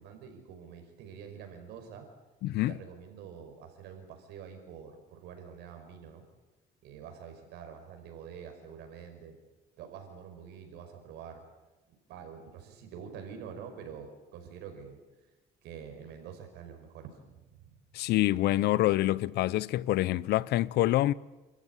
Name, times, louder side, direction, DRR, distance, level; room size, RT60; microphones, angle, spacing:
voice 1, 0.0-2.1 2.7-6.3 6.8-9.4 9.8-11.4 12.1-15.0 15.6-17.7, right 7 dB, 90° right, 5.4 m, -46 dB
voice 2, 2.4-2.8 17.9-21.1, left 15 dB, 75° left, 0.7 m, -26 dB
29.0 x 14.0 x 9.9 m
cardioid pair, 110°, 17 cm